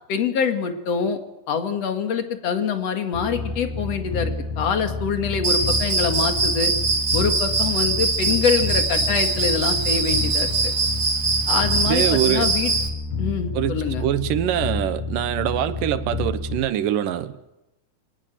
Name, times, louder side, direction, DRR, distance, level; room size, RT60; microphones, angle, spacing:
voice 1, 0.1-1.2 1.5-6.7 7.1-10.7 11.5-12.7 13.2-14.0, left 6 dB, 55° left, 6 dB, 3.0 m, -25 dB
sound 1, 3.1-16.6, left 3 dB, 70° left, 6.1 m, -30 dB
Cricket, 5.4-12.9, right 3 dB, 35° right, 2.4 m, -22 dB
voice 2, 11.8-12.5 13.5-17.5, right 11 dB, 90° right, 12 dB, 2.8 m, -24 dB
25.0 x 19.0 x 9.1 m, 0.93 s
omnidirectional pair, 3.8 m